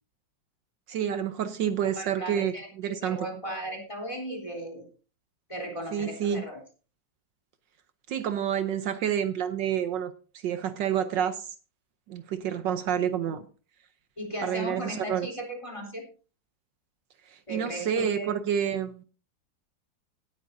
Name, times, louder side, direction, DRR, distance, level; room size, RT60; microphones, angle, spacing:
voice 1, 0.9-3.2 5.9-6.4 8.1-11.5 12.1-13.5 14.4-15.3 17.3-19.0, right 9 dB, 70° right, 10 dB, 1.4 m, -29 dB
voice 2, 1.9-4.9 5.5-6.6 13.2-13.3 14.2-16.1 17.5-18.3, equal, 15° left, 0 dB, 3.4 m, -36 dB
17.5 x 9.6 x 2.6 m, 0.36 s
omnidirectional pair, 2.1 m